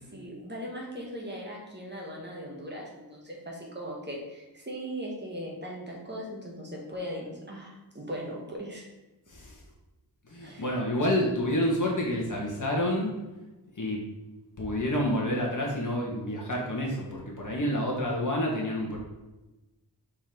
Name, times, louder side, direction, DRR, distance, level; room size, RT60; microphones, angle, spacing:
voice 1, 0.1-8.8 10.4-10.7, equal, 25° right, -3 dB, 1.7 m, -39 dB
voice 2, 9.3-9.6 10.3-13.1 13.8-14.0 14.6-19.0, left 1 dB, 45° left, -2 dB, 1.8 m, -28 dB
5.3 x 4.6 x 4.6 m, 1.1 s
wide cardioid pair, 110°, 43 cm